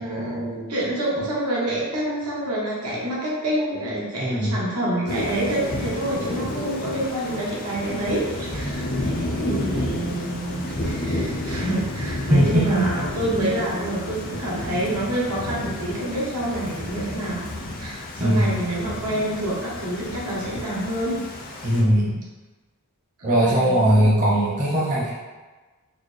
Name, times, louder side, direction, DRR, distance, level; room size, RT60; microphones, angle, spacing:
voice 1, 0.0-17.5 17.8-21.2 23.2-23.9, right 1 dB, 85° right, -6 dB, 1.0 m, -27 dB
voice 2, 4.2-4.6 12.3-12.8 18.2-18.6 21.6-22.2 23.2-25.1, equal, 35° right, -6 dB, 0.7 m, -19 dB
Thunder / Rain, 5.1-21.8, left 1 dB, 40° left, 0.4 m, -31 dB
3.9 x 2.1 x 3.2 m, 1.3 s
head